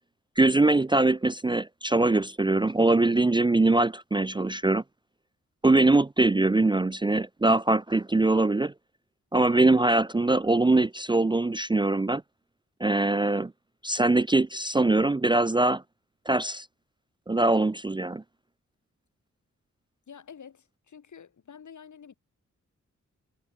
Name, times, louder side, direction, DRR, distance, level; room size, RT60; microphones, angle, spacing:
voice 1, 0.4-4.8 5.6-8.7 9.3-12.2 12.8-13.5 13.8-15.8 16.3-16.7 17.3-18.2, right 2 dB, 15° right, 0.5 m, -22 dB
voice 2, 20.1-22.1, left 7 dB, 75° left, 7.7 m, -48 dB
wide cardioid pair, 135°, 30 cm